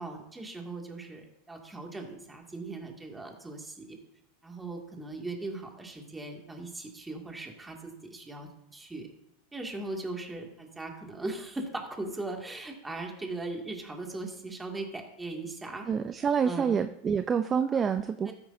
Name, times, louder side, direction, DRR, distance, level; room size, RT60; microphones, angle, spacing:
voice 1, 0.0-4.0 4.4-9.1 9.5-15.9 16.4-16.8 17.7-18.3, right 2 dB, 10° right, 1 dB, 2.2 m, -39 dB
voice 2, 15.9-18.3, right 7 dB, 25° right, 10 dB, 0.5 m, -27 dB
13.5 x 9.9 x 2.7 m, 0.81 s
hypercardioid pair, 95°, 0 cm